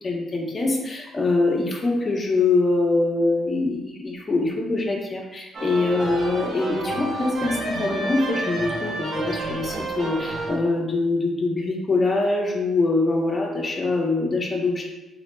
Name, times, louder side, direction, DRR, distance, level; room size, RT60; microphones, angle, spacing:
voice 1, 0.0-14.8, left 3 dB, 35° left, 0 dB, 0.9 m, -24 dB
sound 1, 5.5-10.6, right 2 dB, 50° right, 1.0 m, -30 dB
4.8 x 4.0 x 2.2 m, 1.1 s
cardioid pair, 90°, 0 cm